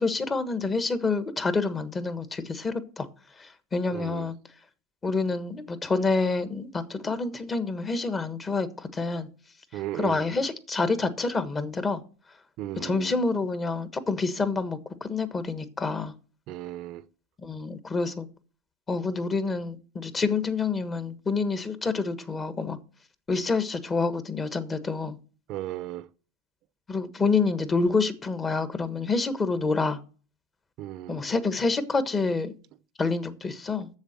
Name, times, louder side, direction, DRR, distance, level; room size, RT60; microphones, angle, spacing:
voice 1, 0.0-3.1 3.4-4.4 5.0-9.3 9.9-12.0 12.8-16.1 17.4-18.3 18.9-22.8 23.3-25.2 26.9-30.0 31.1-32.5 33.0-33.9, left 4 dB, 25° left, 1.3 m, -27 dB
voice 2, 3.9-4.3 9.7-10.3 12.6-13.1 16.5-17.0 25.5-26.1 30.8-31.2, right 14 dB, 55° right, 0.8 m, -35 dB
7.3 x 7.0 x 7.4 m
supercardioid pair, 105°, 0 cm